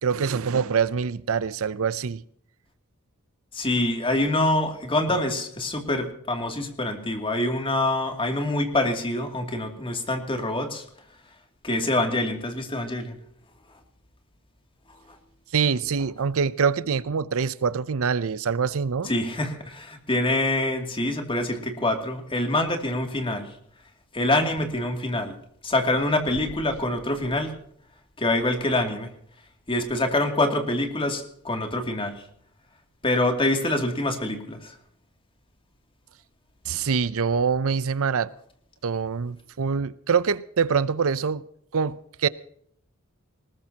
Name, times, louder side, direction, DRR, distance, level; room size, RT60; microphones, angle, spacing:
voice 1, 0.0-2.2 15.5-19.1 36.7-38.3 38.8-41.4 41.7-42.3, right 6 dB, 65° right, 0.6 m, -25 dB
voice 2, 3.5-10.8 11.6-13.2 19.0-23.5 24.1-25.3 25.6-27.5 28.2-29.1 29.7-32.1 33.0-34.8, left 1 dB, 25° left, 2.6 m, -25 dB
20.5 x 19.5 x 2.9 m
head